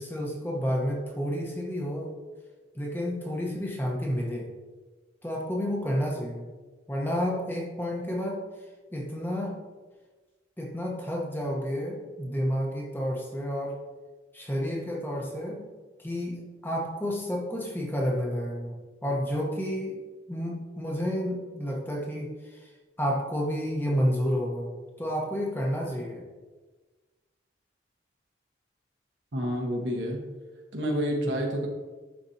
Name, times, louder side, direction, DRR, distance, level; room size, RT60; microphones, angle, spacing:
voice 1, 0.0-2.1 2.7-4.5 5.2-6.5 6.9-8.4 8.9-9.6 10.6-13.7 14.3-15.7 16.0-20.0 20.3-22.7 23.0-24.7 25.0-26.2, equal, 10° left, -1 dB, 0.9 m, -30 dB
voice 2, 29.3-30.3 30.7-31.7, equal, 75° right, 0 dB, 1.3 m, -29 dB
10.5 x 4.3 x 2.8 m, 1.3 s
head